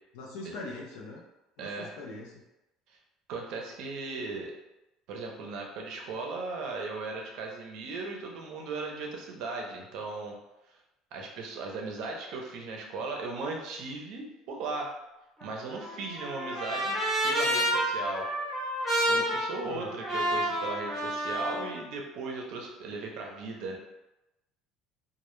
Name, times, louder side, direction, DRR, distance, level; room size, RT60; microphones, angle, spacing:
voice 1, 0.1-1.2 1.6-2.4 19.6-19.9, left 3 dB, 85° left, -2 dB, 0.4 m, -42 dB
voice 2, 1.6-1.9 3.3-4.5 5.1-10.3 11.1-14.9 15.4-17.0 17.2-18.3 19.1-23.8, right 3 dB, 55° right, 1 dB, 0.5 m, -37 dB
Trumpet, 15.4-21.7, equal, 5° left, 0.7 m, -30 dB
2.0 x 2.0 x 3.0 m, 0.96 s
cardioid pair, 170°, 0 cm